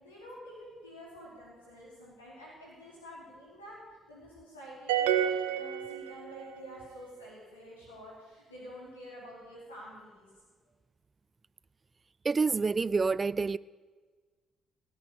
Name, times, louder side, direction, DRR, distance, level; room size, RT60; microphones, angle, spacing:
voice 1, 0.0-3.8 4.1-10.3, equal, 85° left, 5.2 m, -48 dB
sound 1, 4.9-6.6, right 10 dB, 75° right, 0.8 m, -29 dB
voice 2, 12.2-13.6, right 4 dB, 35° right, 0.4 m, -27 dB
16.5 x 8.9 x 8.7 m
figure-of-eight pair, 45°, 0 cm